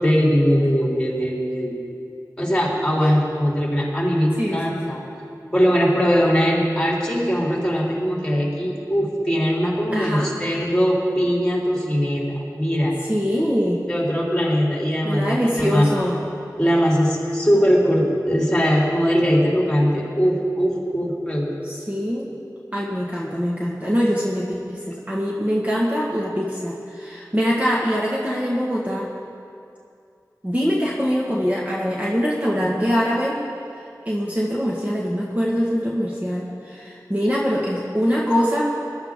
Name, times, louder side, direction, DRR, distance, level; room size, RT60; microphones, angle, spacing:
voice 1, 0.0-1.7 2.4-5.0 5.5-13.0 13.9-15.9 16.6-21.5 38.1-38.2, equal, 10° left, -4 dB, 3.7 m, -20 dB
voice 2, 4.4-4.8 5.4-5.5 9.9-10.3 13.0-13.8 15.0-16.2 21.6-22.3 22.7-29.1 30.4-33.4 34.0-38.6, equal, 20° right, -5 dB, 1.6 m, -23 dB
21.0 x 12.0 x 3.7 m, 2.5 s
wide cardioid pair, 50°, 7 cm